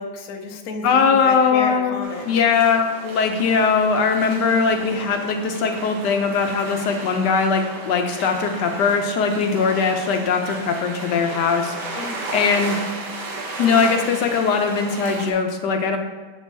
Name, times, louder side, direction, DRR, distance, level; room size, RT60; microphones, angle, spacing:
voice 1, 0.0-2.4 12.0-12.2, left 3 dB, 70° left, 3 dB, 1.1 m, -32 dB
voice 2, 0.8-1.9 2.3-12.8 13.6-16.0, left 5 dB, 85° left, 4 dB, 1.3 m, -20 dB
sound 1, 2.0-15.3, right 2 dB, 85° right, 1.5 m, -34 dB
6.9 x 6.3 x 2.7 m, 1.3 s
omnidirectional pair, 1.8 m